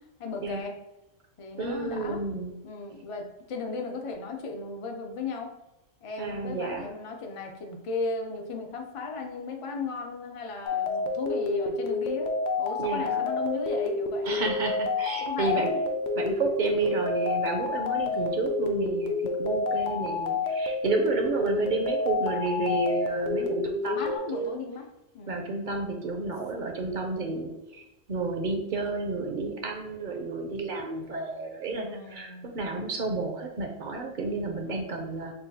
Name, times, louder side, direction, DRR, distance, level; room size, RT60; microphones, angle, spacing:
voice 1, 0.2-0.7 1.4-2.2 2.6-5.5 6.0-14.3 15.2-15.6 16.7-17.2 18.0-18.5 19.6-20.1 23.9-24.9 25.1-25.6 31.7-32.5 34.6-35.1, left 4 dB, 60° left, 3 dB, 0.3 m, -36 dB
voice 2, 1.6-2.5 6.2-6.9 12.8-13.2 14.2-15.8 16.1-19.1 19.4-24.0 24.3-24.6 25.3-27.8 28.1-35.3, right 3 dB, 50° right, 3 dB, 0.6 m, -31 dB
sound 1, 10.6-24.2, left 3 dB, 75° left, 0.9 m, -29 dB
6.2 x 2.3 x 2.7 m, 0.92 s
omnidirectional pair, 1.3 m